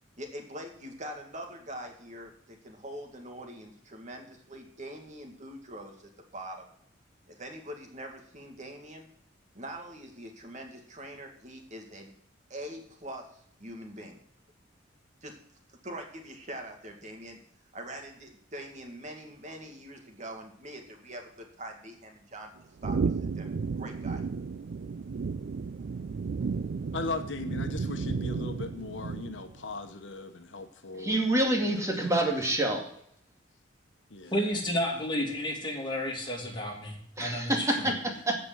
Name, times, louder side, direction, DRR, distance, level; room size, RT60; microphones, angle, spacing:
voice 1, 0.2-5.9 6.3-6.7 7.3-9.1 9.5-12.1 12.5-13.2 13.6-14.2 15.2-15.3 15.8-17.4 17.7-22.5 22.8-23.0 23.4-23.5 23.8-24.2, right 1 dB, 40° right, 3 dB, 2.2 m, -43 dB
sound 1, 22.8-29.6, right 5 dB, 55° right, 0.4 m, -33 dB
voice 2, 26.9-31.2 31.6-32.4 34.1-34.3 37.9-38.0, left 3 dB, 70° left, 8 dB, 1.1 m, -38 dB
voice 3, 30.9-32.9 37.2-38.4, right 1 dB, 15° right, 2 dB, 2.3 m, -27 dB
voice 4, 34.3-37.9, left 1 dB, 25° left, 0 dB, 2.8 m, -31 dB
15.5 x 5.3 x 7.8 m, 0.67 s
head